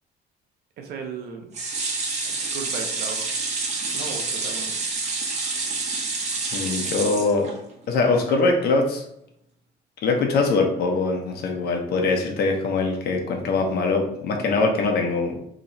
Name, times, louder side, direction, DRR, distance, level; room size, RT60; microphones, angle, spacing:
voice 1, 0.8-1.5 2.3-3.4 3.9-4.8, right 5 dB, 70° right, 3 dB, 0.9 m, -36 dB
sound 1, 1.5-7.8 8.3-8.4 8.7-8.8, right 3 dB, 40° right, 1.1 m, -28 dB
voice 2, 6.5-7.5 7.9-9.0 10.0-15.5, left 3 dB, 70° left, 2 dB, 0.9 m, -22 dB
3.1 x 2.9 x 4.0 m, 0.76 s
cardioid pair, 110°, 17 cm